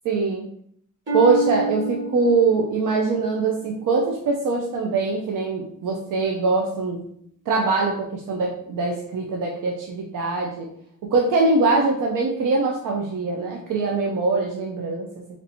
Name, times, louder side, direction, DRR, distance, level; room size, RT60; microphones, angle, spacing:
voice 1, 0.0-0.4 1.1-7.0 7.5-10.7 11.1-15.1, right 3 dB, 80° right, 0 dB, 0.6 m, -22 dB
Harp, 1.1-4.8 5.4-5.8 6.4-6.5, right 3 dB, 35° right, 1.3 m, -30 dB
3.2 x 2.7 x 4.1 m, 0.67 s
cardioid pair, 85°, 32 cm